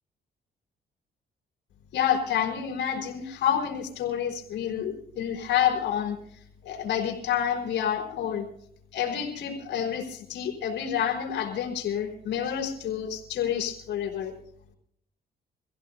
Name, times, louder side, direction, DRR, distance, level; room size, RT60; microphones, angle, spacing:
voice 1, 1.9-6.2 6.6-8.5 8.9-14.3, left 9 dB, 85° left, 1 dB, 4.1 m, -28 dB
25.5 x 16.0 x 2.6 m, 0.70 s
cardioid pair, 95°, 18 cm